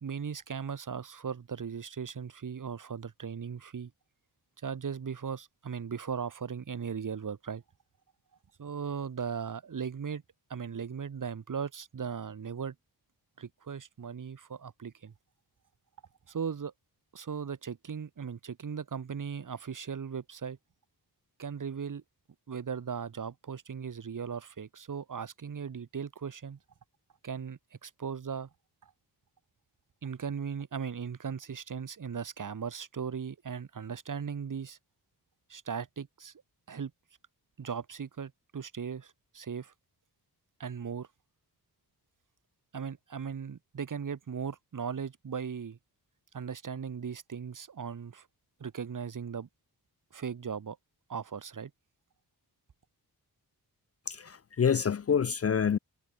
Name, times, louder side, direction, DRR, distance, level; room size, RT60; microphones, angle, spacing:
voice 1, 0.0-3.9 4.6-7.6 8.6-10.2 10.5-12.8 13.4-15.1 16.3-16.7 17.1-20.6 21.4-22.0 22.5-26.6 27.2-28.5 28.8-28.9 30.0-34.8 35.5-36.3 36.7-36.9 37.6-39.7 40.6-41.1 42.7-45.8 46.3-48.3 48.6-49.5 50.1-50.8 51.1-51.7, right 6 dB, 50° right, 2.1 m, -38 dB
voice 2, 54.1-55.8, left 7 dB, 40° left, 0.5 m, -27 dB
wide cardioid pair, 160°, 39 cm